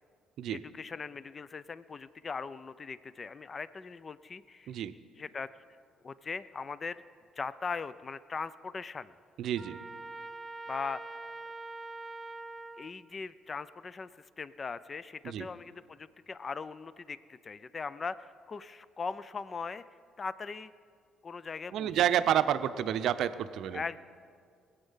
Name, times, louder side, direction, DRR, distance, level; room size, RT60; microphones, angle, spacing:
voice 1, 0.5-4.7 5.2-5.5 6.0-7.0 7.4-9.1 10.7-11.0 12.8-19.8 20.2-20.7 21.2-21.9 23.7-24.0, left 5 dB, 40° left, 16 dB, 0.5 m, -40 dB
voice 2, 9.4-9.8 15.2-15.5 21.7-23.8, right 10 dB, 70° right, 11 dB, 0.6 m, -29 dB
Trumpet, 9.6-12.9, right 2 dB, 20° right, 0.7 m, -43 dB
20.5 x 8.2 x 5.7 m, 2.2 s
hypercardioid pair, 60°, 0 cm